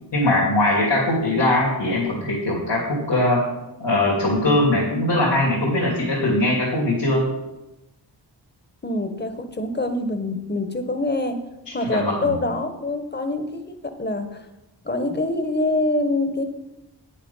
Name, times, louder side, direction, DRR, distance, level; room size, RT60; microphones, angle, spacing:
voice 1, 0.1-3.4 3.8-7.3 11.7-12.3, left 1 dB, 75° left, -5 dB, 2.9 m, -21 dB
voice 2, 8.8-11.4 11.7-14.5 14.8-16.5, left 2 dB, 25° left, 8 dB, 1.2 m, -25 dB
8.9 x 7.4 x 5.6 m, 0.98 s
cardioid pair, 55°, 43 cm